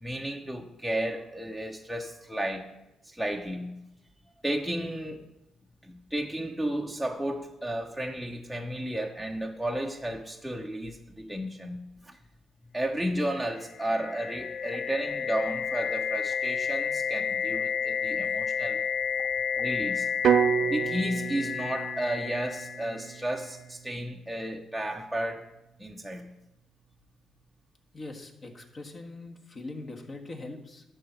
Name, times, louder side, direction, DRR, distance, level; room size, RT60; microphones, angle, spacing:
voice 1, 0.0-2.7 3.0-3.8 4.4-5.2 5.8-12.2 12.7-18.8 19.6-20.1 20.6-25.5 25.8-26.3, right 1 dB, ahead, 0.8 m, -33 dB
sound 1, 13.5-23.4, left 7 dB, 55° left, 0.4 m, -31 dB
sound 2, 20.2-24.3, right 8 dB, 65° right, 0.4 m, -29 dB
voice 2, 27.9-30.8, left 2 dB, 40° left, 1.6 m, -41 dB
11.5 x 4.0 x 7.3 m
cardioid pair, 90°, 0 cm